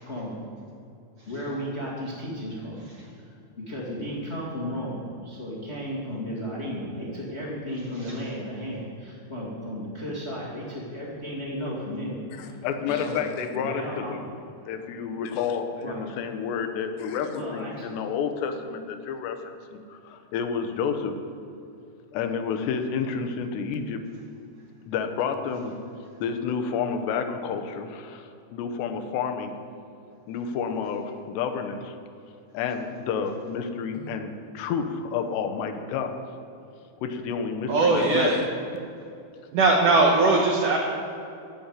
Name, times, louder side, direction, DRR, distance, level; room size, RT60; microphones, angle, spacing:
voice 1, 0.0-0.5 1.3-2.8 3.2-12.6 12.9-13.2 13.5-14.2 15.8-16.0 17.3-17.9, equal, 35° left, -6 dB, 1.0 m, -34 dB
voice 2, 12.4-14.4 14.7-21.1 22.1-24.0 24.9-25.7 26.2-29.5 30.3-32.0 32.5-36.1 37.0-38.4, left 6 dB, 80° left, 6 dB, 3.0 m, -30 dB
voice 3, 37.7-38.4 39.5-40.8, right 3 dB, 75° right, -1 dB, 2.0 m, -20 dB
14.5 x 5.8 x 9.6 m, 2.6 s
omnidirectional pair, 5.1 m